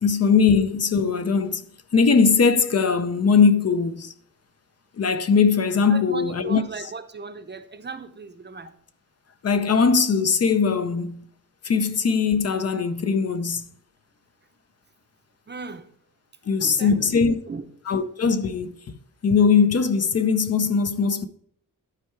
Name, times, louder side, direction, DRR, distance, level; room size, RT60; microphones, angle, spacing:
voice 1, 0.0-1.7 1.9-4.1 5.0-6.6 9.4-11.2 11.6-13.6 16.5-17.3 17.9-18.8 19.2-21.3, left 5 dB, 45° left, 0.6 m, -20 dB
voice 2, 5.9-8.7 15.5-15.9 16.6-17.6, right 4 dB, 30° right, 0.7 m, -37 dB
11.5 x 4.6 x 4.6 m
wide cardioid pair, 140°, 34 cm